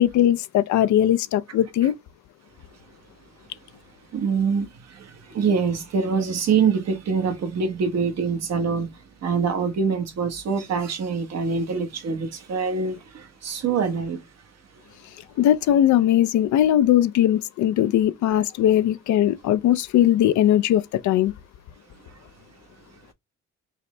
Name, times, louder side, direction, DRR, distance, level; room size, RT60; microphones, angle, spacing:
voice 1, 0.0-1.9 15.4-21.3, left 11 dB, 70° left, 0.5 m, -19 dB
voice 2, 4.1-4.7 4.9-5.1 5.3-8.9 9.2-14.2, right 5 dB, 60° right, 1.1 m, -24 dB
5.6 x 2.0 x 3.2 m
cardioid pair, 90°, 30 cm